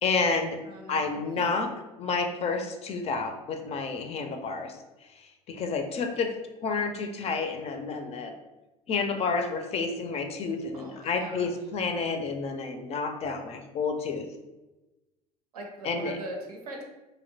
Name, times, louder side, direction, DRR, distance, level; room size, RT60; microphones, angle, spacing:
voice 1, 0.0-0.6 0.9-1.7 2.0-4.7 5.5-6.3 6.6-8.3 8.9-14.2 15.8-16.1, left 4 dB, 35° left, 5 dB, 0.4 m, -30 dB
voice 2, 0.6-1.5 10.7-11.5 15.5-16.8, right 1 dB, 85° right, 1 dB, 0.6 m, -41 dB
2.6 x 2.1 x 2.6 m, 1.1 s
hypercardioid pair, 70°, 19 cm